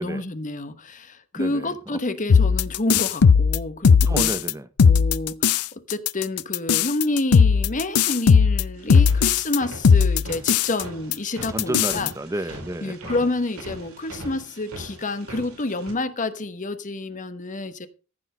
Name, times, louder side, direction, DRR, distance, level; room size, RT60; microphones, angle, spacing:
voice 1, 0.0-4.3 4.8-12.1 12.8-17.9, left 2 dB, 35° left, 1.0 m, -29 dB
voice 2, 1.3-1.7 4.0-4.7 11.5-13.1, right 1 dB, 15° right, 0.6 m, -30 dB
sound 1, 2.3-4.5 4.8-5.6 5.9-9.6 9.8-10.8 11.1-11.2 11.4-12.1, left 6 dB, 80° left, 0.5 m, -17 dB
sound 2, 8.7-15.9, right 1 dB, 75° right, 3.8 m, -41 dB
14.5 x 6.2 x 5.5 m
head